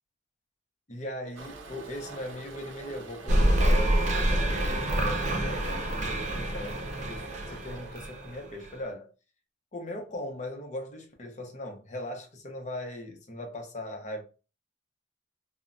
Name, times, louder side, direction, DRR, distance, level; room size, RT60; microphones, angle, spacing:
voice 1, 0.9-9.1 9.7-14.2, left 1 dB, 40° left, 0.7 m, -39 dB
Toilet flush, 1.4-8.4, right 3 dB, 90° right, 0.5 m, -45 dB
sound 1, 3.3-8.7, right 1 dB, 35° right, 0.4 m, -27 dB
3.1 x 2.1 x 2.5 m
head